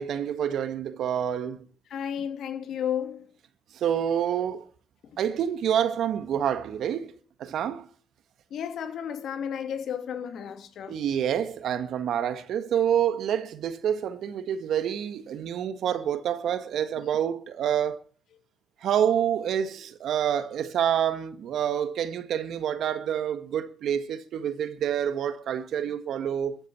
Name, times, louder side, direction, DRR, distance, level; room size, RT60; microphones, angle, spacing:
voice 1, 0.0-1.7 3.7-4.7 5.2-7.1 7.4-7.9 10.9-18.0 18.8-26.6, right 9 dB, 70° right, 1.7 m, -27 dB
voice 2, 1.9-3.3 8.5-11.0, left 8 dB, 70° left, 2.8 m, -33 dB
14.5 x 8.9 x 8.7 m
cardioid pair, 90°, 0 cm